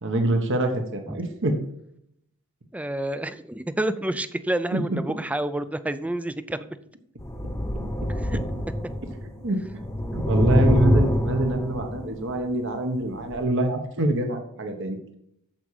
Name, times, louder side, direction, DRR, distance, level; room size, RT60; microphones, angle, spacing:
voice 1, 0.0-1.5 4.7-4.8 9.4-9.6 10.1-15.0, right 1 dB, 55° right, 5 dB, 1.2 m, -25 dB
voice 2, 2.7-6.6 8.2-8.4, right 1 dB, 5° right, 12 dB, 0.4 m, -29 dB
sound 1, 7.2-9.3 9.6-12.3 13.2-13.4, equal, 10° left, 0.9 m, -25 dB
8.9 x 7.3 x 4.9 m, 0.74 s
head